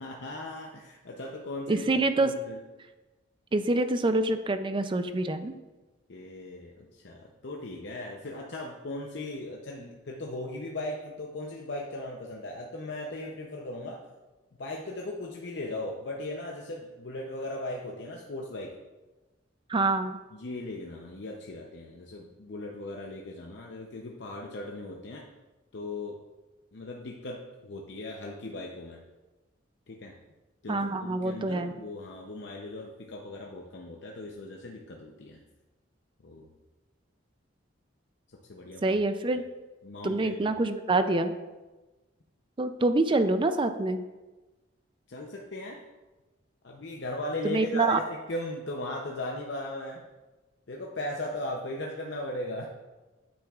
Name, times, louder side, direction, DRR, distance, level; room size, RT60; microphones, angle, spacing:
voice 1, 0.0-1.9 2.2-2.6 6.1-14.0 14.6-18.7 20.3-25.3 25.7-26.2 26.7-29.0 29.9-30.1 30.6-35.4 36.2-36.5 38.5-39.0 39.8-40.6 45.1-45.8 46.6-48.0 48.3-50.0 50.7-52.7, left 2 dB, 60° left, 0 dB, 0.7 m, -38 dB
voice 2, 1.7-2.4 3.5-5.6 19.7-20.2 30.7-31.7 38.8-39.4 40.0-41.3 42.6-44.0 47.4-48.0, right 2 dB, 25° right, 9 dB, 0.4 m, -26 dB
8.8 x 8.6 x 2.4 m, 1.2 s
head